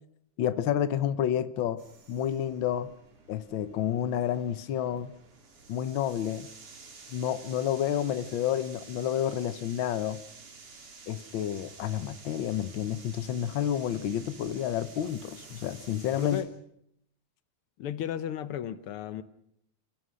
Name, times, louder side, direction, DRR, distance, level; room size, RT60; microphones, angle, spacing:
voice 1, 0.4-1.8 2.1-2.9 3.3-5.1 5.7-6.5 7.1-10.2 11.1-16.4, left 10 dB, 90° left, 12 dB, 1.0 m, -30 dB
sound 1, 1.8-16.4, right 4 dB, 75° right, 4.8 m, -51 dB
voice 2, 16.2-16.5 17.8-19.2, left 10 dB, 70° left, 13 dB, 1.4 m, -34 dB
29.5 x 15.0 x 6.4 m, 0.74 s
omnidirectional pair, 3.5 m